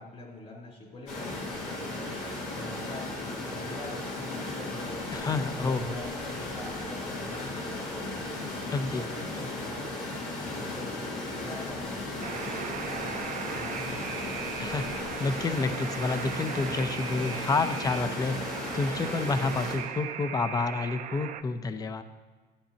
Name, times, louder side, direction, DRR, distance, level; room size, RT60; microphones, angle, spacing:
voice 1, 0.0-2.2 2.5-5.3 5.6-8.2 8.5-9.9 10.5-11.1 11.4-14.2, left 2 dB, 45° left, -3 dB, 3.2 m, -44 dB
sound 1, 1.1-19.8, left 2 dB, 90° left, 2.8 m, -36 dB
voice 2, 5.1-5.9 8.7-9.3 14.6-18.4 18.7-22.0, left 3 dB, 20° left, 10 dB, 0.5 m, -29 dB
Alarm, 12.2-21.4, right 9 dB, 50° right, 0.5 m, -38 dB
13.0 x 8.9 x 2.8 m, 1.4 s
cardioid pair, 110°, 17 cm